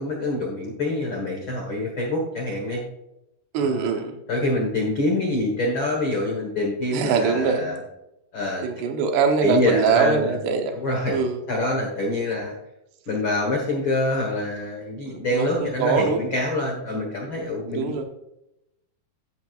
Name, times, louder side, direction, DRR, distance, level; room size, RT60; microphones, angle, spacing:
voice 1, 0.0-2.8 3.6-3.9 4.3-7.8 8.3-8.7 9.4-10.3 10.7-11.2 11.5-12.5 13.1-17.9, left 2 dB, 85° left, 0 dB, 1.1 m, -25 dB
voice 2, 3.5-4.2 6.9-7.7 8.6-10.7 11.1-11.4 15.1-16.2 17.7-18.0, right 5 dB, 75° right, 5 dB, 3.1 m, -23 dB
14.0 x 7.9 x 2.5 m, 0.85 s
omnidirectional pair, 4.9 m